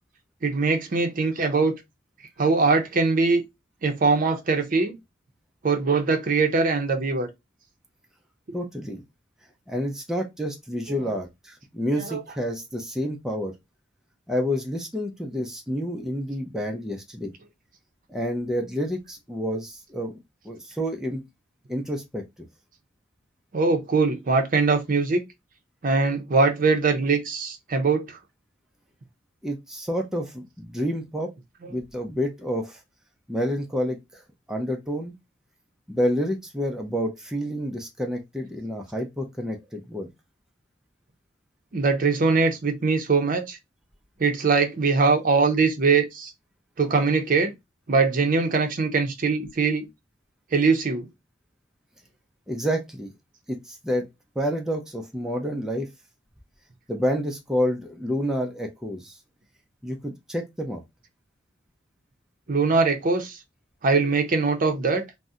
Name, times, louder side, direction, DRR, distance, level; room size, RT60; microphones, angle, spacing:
voice 1, 0.4-1.7 2.4-3.4 3.8-5.0 5.6-7.3 11.0-11.1 11.9-12.4 23.5-25.2 25.8-28.2 31.6-31.7 41.7-43.6 44.2-46.3 46.8-47.5 47.9-49.9 50.5-51.1 62.5-63.4 63.8-65.0, right 4 dB, 50° right, 0.6 m, -22 dB
voice 2, 8.5-9.0 9.7-13.5 14.3-17.3 18.1-20.2 20.4-21.2 21.7-22.2 29.4-31.3 31.7-32.8 33.3-34.2 34.5-35.1 35.9-40.1 52.5-53.1 53.5-54.1 54.4-55.9 56.9-59.2 59.8-60.8, equal, 5° right, 0.4 m, -29 dB
2.6 x 2.1 x 3.5 m
head